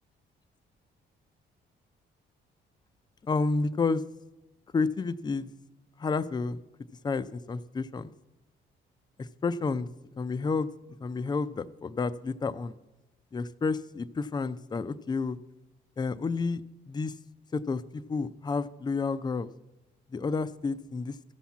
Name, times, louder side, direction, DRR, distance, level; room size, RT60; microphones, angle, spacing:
voice 1, 3.2-4.0 4.7-5.5 6.0-6.6 7.0-8.1 9.2-9.9 10.2-10.7 11.0-12.8 13.3-15.4 16.0-16.6 16.9-17.1 17.5-19.5 20.1-21.2, left 4 dB, 20° left, 14 dB, 0.4 m, -30 dB
13.0 x 5.8 x 7.2 m, 1.0 s
cardioid pair, 90°, 20 cm